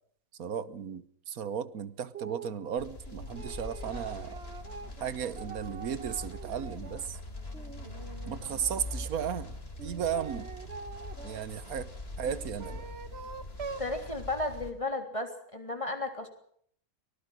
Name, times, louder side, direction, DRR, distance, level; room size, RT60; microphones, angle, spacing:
voice 1, 0.4-4.4 5.0-7.2 8.3-10.5 11.2-11.9 12.2-12.9, right 8 dB, 85° right, 1.5 m, -35 dB
sound 1, 2.1-2.6 3.1-7.1 7.5-9.1 9.8-11.4 12.2-13.9, right 5 dB, 50° right, 1.4 m, -45 dB
sound 2, 2.8-14.7, left 2 dB, 45° left, 3.8 m, -43 dB
voice 2, 13.8-16.3, left 2 dB, 20° left, 3.5 m, -34 dB
23.5 x 19.5 x 6.3 m
omnidirectional pair, 1.5 m